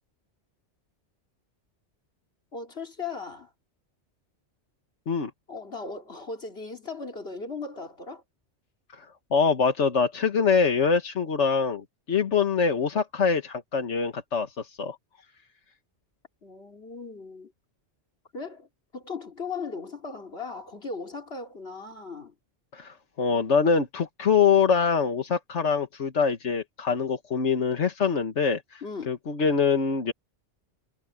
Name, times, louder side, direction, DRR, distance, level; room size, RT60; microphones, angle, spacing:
voice 1, 2.5-3.5 5.5-8.2 16.4-17.5 18.3-18.7 18.9-22.3 28.8-29.1, left 4 dB, 60° left, 3.3 m, -37 dB
voice 2, 8.9-15.0 22.7-30.1, left 5 dB, 85° left, 1.8 m, -24 dB
omnidirectional pair, 1.2 m